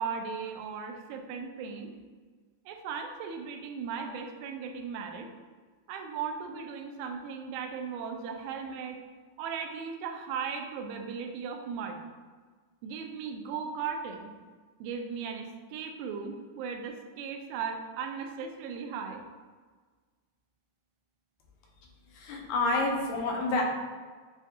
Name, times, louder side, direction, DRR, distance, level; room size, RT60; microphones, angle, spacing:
voice 1, 0.0-1.9 2.7-5.3 5.9-9.0 9.4-12.0 12.8-14.3 14.8-19.2, right 6 dB, 85° right, 4 dB, 2.0 m, -37 dB
voice 2, 22.1-23.6, left 2 dB, 80° left, 0 dB, 2.0 m, -28 dB
7.2 x 2.6 x 2.5 m, 1.5 s
omnidirectional pair, 3.5 m